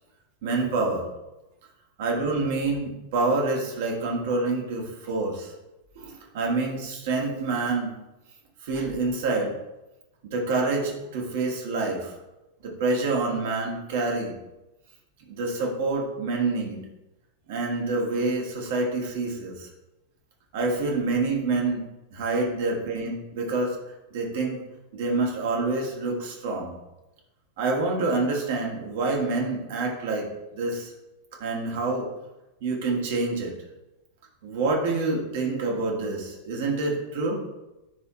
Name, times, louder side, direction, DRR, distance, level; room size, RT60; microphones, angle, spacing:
voice 1, 0.4-1.1 2.0-5.5 6.0-7.9 8.6-9.5 10.3-12.1 12.6-14.3 15.4-16.8 17.5-19.7 20.5-21.9 22.1-23.8 24.1-24.6 24.9-26.7 27.6-30.3 30.5-30.9 31.4-32.1 32.6-33.5 34.4-37.4, right 3 dB, 55° right, 0 dB, 1.5 m, -27 dB
9.8 x 3.5 x 2.9 m, 0.98 s
figure-of-eight pair, 90°, 0 cm